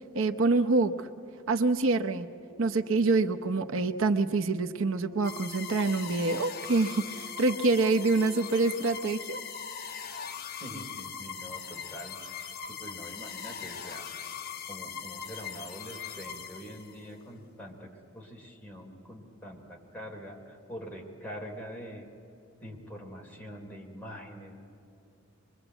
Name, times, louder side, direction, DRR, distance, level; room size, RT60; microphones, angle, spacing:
voice 1, 0.1-1.1 1.5-2.3 2.6-9.4, right 3 dB, 75° right, 7 dB, 0.8 m, -26 dB
sound 1, 2.2-8.6, right 4 dB, 20° right, 1.2 m, -51 dB
sound 2, 5.2-17.1, left 7 dB, 50° left, 1.0 m, -40 dB
voice 2, 10.6-12.4 12.7-14.1 14.7-22.1 22.6-24.5, equal, 10° left, -1 dB, 3.4 m, -44 dB
24.5 x 22.5 x 8.0 m, 2.7 s
head